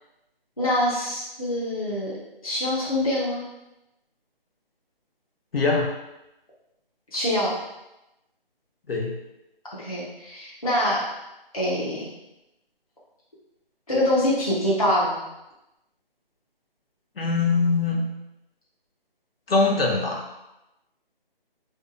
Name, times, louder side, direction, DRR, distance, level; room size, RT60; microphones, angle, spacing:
voice 1, 0.6-2.1 2.4-3.4 7.1-7.5 9.8-11.1 11.5-12.1 13.9-15.2, left 1 dB, 40° left, -8 dB, 0.4 m, -24 dB
voice 2, 5.5-5.9 8.9-9.1 17.2-18.1 19.5-20.3, left 3 dB, 75° left, -1 dB, 0.7 m, -22 dB
2.6 x 2.2 x 2.4 m, 0.92 s
figure-of-eight pair, 180°, 29 cm